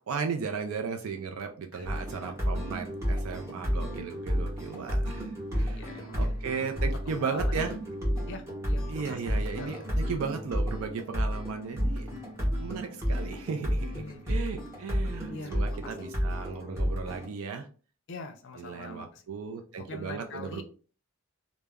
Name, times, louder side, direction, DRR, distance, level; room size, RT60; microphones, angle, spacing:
voice 1, 0.1-7.7 8.9-12.1 12.6-17.7 18.6-20.6, right 5 dB, 75° right, 5 dB, 0.4 m, -36 dB
voice 2, 1.7-2.4 5.6-6.8 7.2-7.7 8.3-9.9 13.9-14.5 15.3-16.1 18.1-19.3 19.8-20.6, left 3 dB, 55° left, 6 dB, 0.4 m, -44 dB
sound 1, 1.8-17.3, equal, 10° right, 0.8 m, -31 dB
2.2 x 2.0 x 3.4 m, 0.38 s
head